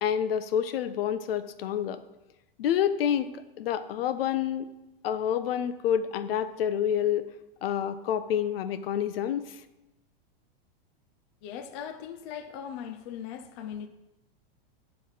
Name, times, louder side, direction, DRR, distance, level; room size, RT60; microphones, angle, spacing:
voice 1, 0.0-2.0 2.6-3.3 3.6-4.7 5.0-7.3 7.6-9.6, left 9 dB, 75° left, 0.6 m, -28 dB
voice 2, 11.4-13.9, left 8 dB, 30° left, 0.4 m, -39 dB
7.6 x 3.3 x 5.5 m
supercardioid pair, 155°, 29 cm